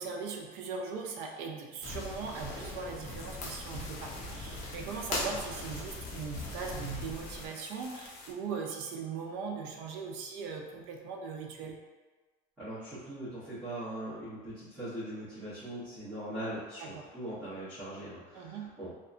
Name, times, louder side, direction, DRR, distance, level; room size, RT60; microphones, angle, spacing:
voice 1, 0.0-11.8 16.8-17.1 18.3-18.7, right 5 dB, 70° right, 1 dB, 0.5 m, -39 dB
sound 1, 1.8-7.5, left 2 dB, 35° left, 0.5 m, -40 dB
sound 2, 2.9-8.3, left 3 dB, 85° left, 0.5 m, -51 dB
voice 2, 12.6-19.0, right 1 dB, 5° right, -16 dB, 0.9 m, -41 dB
2.7 x 2.2 x 2.4 m, 1.3 s
cardioid pair, 175°, 18 cm